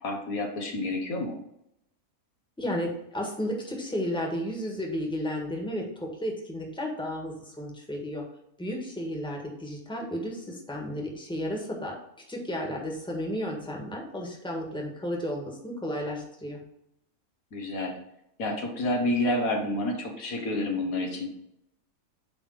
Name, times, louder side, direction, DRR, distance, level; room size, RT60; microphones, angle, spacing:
voice 1, 0.0-1.4 17.5-18.0 18.4-21.3, left 1 dB, 80° left, 1 dB, 1.9 m, -29 dB
voice 2, 2.6-8.2 8.6-11.9 12.3-16.6, equal, 5° left, 0 dB, 1.5 m, -33 dB
8.9 x 3.6 x 4.8 m, 0.78 s
omnidirectional pair, 1.5 m